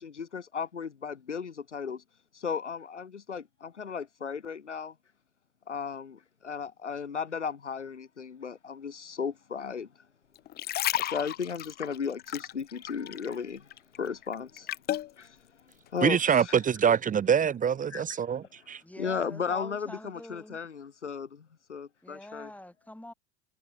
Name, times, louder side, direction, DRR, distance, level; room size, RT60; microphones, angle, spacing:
voice 1, 0.0-2.0 2.3-4.9 5.7-9.9 10.7-14.7 15.2-16.6 17.9-18.0 19.0-22.5, left 6 dB, 90° left, 2.3 m, -35 dB
sound 1, 10.4-13.4 13.7-15.1 15.7-15.9, left 13 dB, 30° left, 0.5 m, -33 dB
voice 2, 16.0-18.8, right 8 dB, 25° right, 0.7 m, -25 dB
voice 3, 18.8-20.6 22.0-23.1, left 1 dB, 5° left, 6.9 m, -45 dB
figure-of-eight pair, 75°, 35 cm